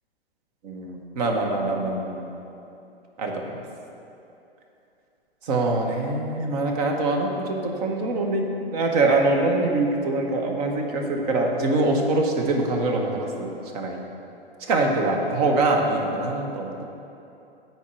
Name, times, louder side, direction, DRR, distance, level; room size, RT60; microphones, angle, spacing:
voice 1, 0.6-2.3 3.2-3.6 5.4-14.0 14.6-16.9, right 2 dB, 40° right, 2 dB, 1.1 m, -24 dB
8.3 x 4.5 x 6.1 m, 2.8 s
figure-of-eight pair, 110°, 30 cm